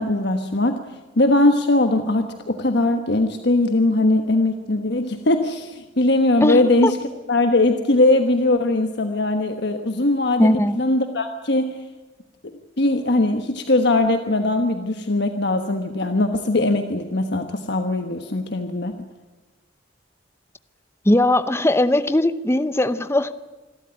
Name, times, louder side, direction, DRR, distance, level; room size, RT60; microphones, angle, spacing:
voice 1, 0.0-7.0 7.3-11.8 12.4-18.9, left 2 dB, 60° left, 6 dB, 1.3 m, -20 dB
voice 2, 6.4-6.9 10.4-10.8 21.0-23.3, left 1 dB, 15° left, 12 dB, 0.8 m, -19 dB
27.0 x 13.0 x 9.8 m, 1.2 s
head